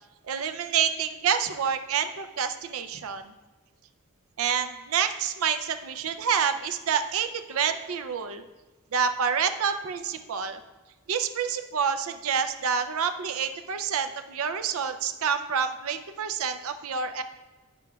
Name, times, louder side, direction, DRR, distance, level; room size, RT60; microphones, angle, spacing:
voice 1, 0.2-3.3 4.4-8.4 8.9-10.6 11.1-17.2, right 7 dB, 75° right, 9 dB, 0.5 m, -28 dB
8.8 x 6.9 x 2.3 m, 1.2 s
head